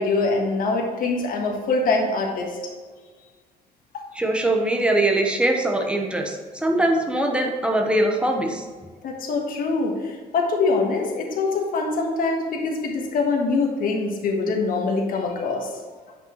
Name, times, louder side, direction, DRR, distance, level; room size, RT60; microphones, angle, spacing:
voice 1, 0.0-2.6 3.9-4.0 9.0-15.7, left 3 dB, 55° left, 1 dB, 1.4 m, -24 dB
voice 2, 4.1-8.6, right 1 dB, 5° right, 2 dB, 1.0 m, -22 dB
8.5 x 5.3 x 3.1 m, 1.5 s
cardioid pair, 110°, 17 cm